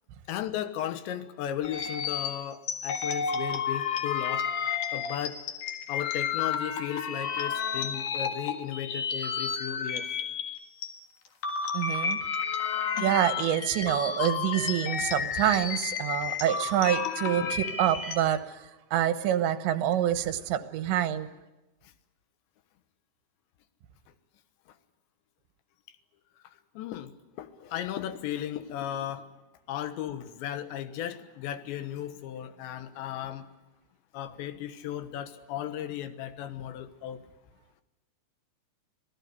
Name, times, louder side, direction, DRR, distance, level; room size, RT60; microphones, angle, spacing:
voice 1, 0.3-4.5 4.9-5.5 5.9-10.1 17.4-17.5 21.8-21.9 24.7-24.8 26.8-29.3 29.7-33.5 34.1-37.3, left 11 dB, 80° left, 11 dB, 3.5 m, -36 dB
sound 1, 1.6-10.9 11.3-18.2, left 6 dB, 55° left, 2.8 m, -31 dB
voice 2, 11.7-12.2 13.0-21.3, right 11 dB, 80° right, 11 dB, 3.4 m, -27 dB
26.0 x 17.0 x 9.6 m, 1.0 s
omnidirectional pair, 5.1 m